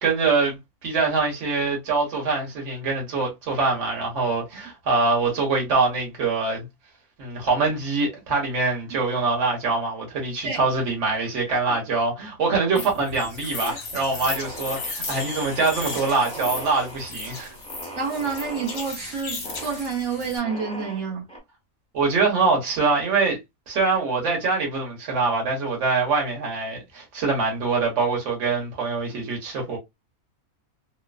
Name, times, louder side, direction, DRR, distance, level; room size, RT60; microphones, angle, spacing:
voice 1, 0.0-6.7 7.2-17.5 21.9-23.4 23.7-29.8, right 4 dB, 60° right, 1.4 m, -24 dB
sound 1, 11.5-12.2 12.5-13.1 13.4-13.8 14.3-18.9 19.4-19.8 20.4-21.4, right 1 dB, 5° left, 0.8 m, -39 dB
sound 2, 12.8-20.4, left 3 dB, 45° left, 1.1 m, -35 dB
voice 2, 18.0-21.3, right 5 dB, 85° right, 1.3 m, -28 dB
3.1 x 2.0 x 2.3 m
omnidirectional pair, 1.5 m